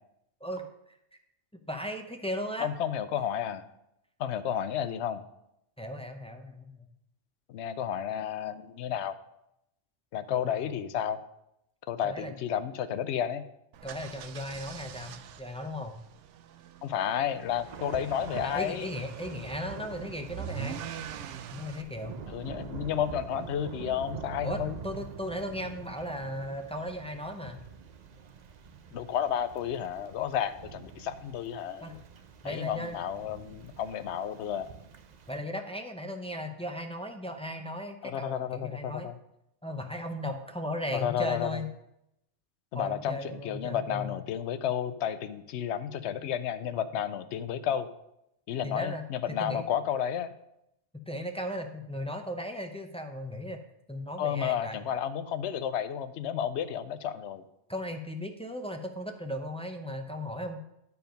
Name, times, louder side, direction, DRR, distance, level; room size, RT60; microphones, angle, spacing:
voice 1, 0.4-1.0 1.5-2.7 5.8-6.9 10.3-10.6 12.0-12.3 13.8-16.0 18.4-20.8 21.5-22.2 24.4-27.6 31.8-31.9 32.4-33.0 35.3-39.1 39.6-41.7 42.7-44.1 48.6-49.6 51.1-53.6 53.9-54.8 57.7-60.6, equal, 10° left, 4 dB, 0.4 m, -36 dB
voice 2, 2.6-3.6 4.2-5.2 7.5-9.2 10.1-11.2 11.9-13.4 16.8-18.9 22.3-24.8 28.9-32.0 32.4-34.7 38.0-39.2 40.9-41.6 42.7-47.9 48.5-50.3 54.2-57.4, left 9 dB, 75° left, 12 dB, 0.9 m, -32 dB
sound 1, 13.7-21.8, right 10 dB, 85° right, 0.9 m, -44 dB
Thunder / Rain, 17.7-35.4, right 6 dB, 50° right, 0.5 m, -45 dB
11.0 x 4.7 x 5.1 m, 0.82 s
omnidirectional pair, 1.2 m